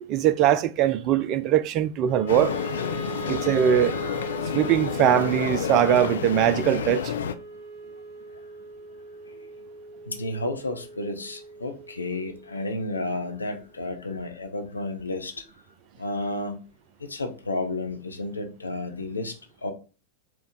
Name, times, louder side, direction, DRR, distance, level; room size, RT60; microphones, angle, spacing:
voice 1, 0.0-2.6 3.3-4.0 4.5-7.1, right 10 dB, 40° right, 0.4 m, -21 dB
Wind instrument woodwind instrument, 2.0-14.3, right 6 dB, ahead, 0.9 m, -41 dB
sound 1, 2.3-7.3, left 8 dB, 65° left, 0.4 m, -30 dB
voice 2, 3.3-3.6 10.1-15.4 16.0-16.6 17.1-19.3 19.6-19.7, left 2 dB, 80° left, 0.7 m, -32 dB
4.5 x 2.3 x 3.9 m
figure-of-eight pair, 90°, 0 cm